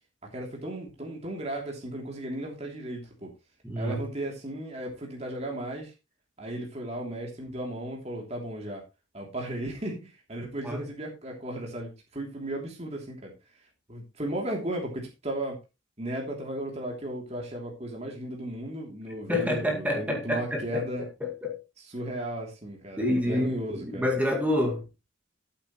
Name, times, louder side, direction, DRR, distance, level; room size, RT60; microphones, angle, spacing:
voice 1, 0.3-3.3 3.8-5.9 6.4-8.8 9.1-13.3 13.9-15.6 16.0-21.1 21.9-24.1, right 1 dB, 30° right, 3.0 m, -35 dB
voice 2, 3.6-4.0 10.4-10.8 19.3-21.6 23.0-24.8, left 1 dB, 5° right, 2.0 m, -28 dB
13.5 x 8.5 x 3.1 m
head